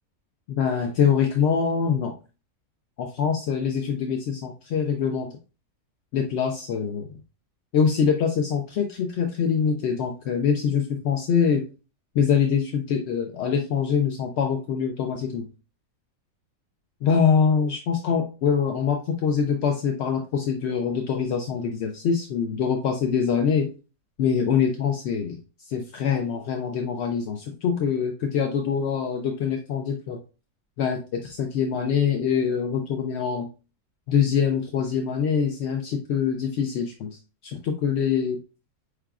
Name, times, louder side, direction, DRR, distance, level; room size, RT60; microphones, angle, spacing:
voice 1, 0.5-2.1 3.0-5.3 6.1-7.1 7.7-11.6 12.1-15.5 17.0-23.7 24.2-25.4 25.7-30.2 30.8-33.5 34.1-37.1 37.4-38.4, left 7 dB, 70° left, 3 dB, 0.6 m, -24 dB
4.7 x 3.4 x 2.3 m, 0.33 s
omnidirectional pair, 1.6 m